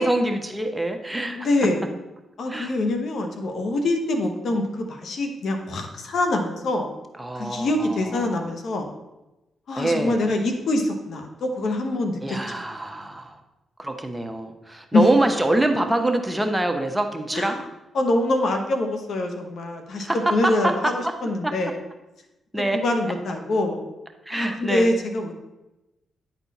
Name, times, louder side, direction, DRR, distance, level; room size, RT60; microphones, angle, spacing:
voice 1, 0.0-1.5 2.5-2.7 7.2-8.5 9.8-10.3 12.2-13.3 13.8-17.6 20.0-21.1 21.4-21.5 22.5-22.8 24.3-24.9, right 1 dB, 10° right, 5 dB, 1.0 m, -25 dB
voice 2, 1.3-1.8 2.4-6.9 7.3-8.9 9.7-12.4 14.9-15.1 17.3-17.6 17.9-20.9 21.2-21.8 22.7-23.8 24.3-25.3, left 2 dB, 70° left, 4 dB, 1.1 m, -24 dB
9.7 x 4.4 x 4.1 m, 1.0 s
cardioid pair, 65°, 0 cm